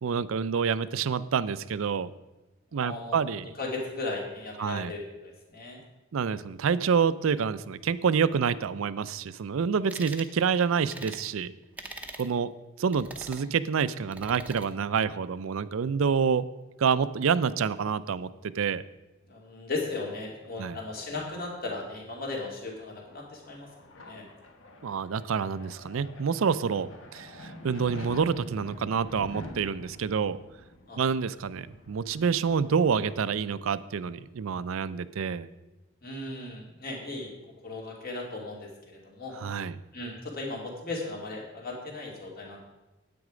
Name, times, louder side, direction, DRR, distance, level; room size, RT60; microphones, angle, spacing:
voice 1, 0.0-2.1 2.7-3.4 4.6-4.9 6.1-11.5 12.2-12.5 12.8-16.5 16.8-18.3 18.6-18.8 20.6-20.8 24.8-30.4 31.0-35.5 39.4-39.8, right 6 dB, 70° right, 16 dB, 0.4 m, -27 dB
voice 2, 2.7-3.2 3.6-5.8 19.3-24.3 30.9-31.0 36.0-39.3 39.9-42.6, left 2 dB, 45° left, -1 dB, 2.5 m, -37 dB
sound 1, 9.9-10.3 10.9-11.3 11.8-12.3 12.9-13.5 14.1-14.7, right 2 dB, 10° right, 0.7 m, -42 dB
sound 2, 22.8-34.1, left 1 dB, 65° left, 1.2 m, -47 dB
9.5 x 8.6 x 5.0 m, 1.0 s
head